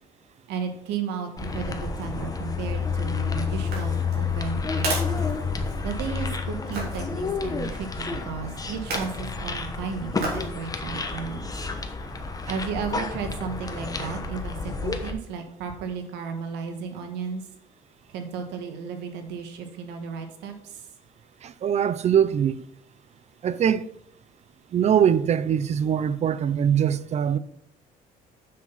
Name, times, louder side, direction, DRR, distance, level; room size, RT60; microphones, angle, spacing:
voice 1, 0.5-5.3 5.8-11.5 12.5-17.4 18.1-20.8, right 6 dB, 90° right, 1.5 m, -34 dB
sound 1, 1.4-15.1, left 4 dB, 20° left, 1.1 m, -30 dB
sound 2, 3.6-6.0 6.7-7.1 8.7-9.2 10.2-10.5 11.0-11.1, right 3 dB, 70° right, 3.6 m, -33 dB
voice 2, 21.4-22.6 23.4-23.8 24.7-27.4, right 8 dB, 40° right, 0.5 m, -22 dB
7.5 x 6.0 x 5.6 m
cardioid pair, 110°, 17 cm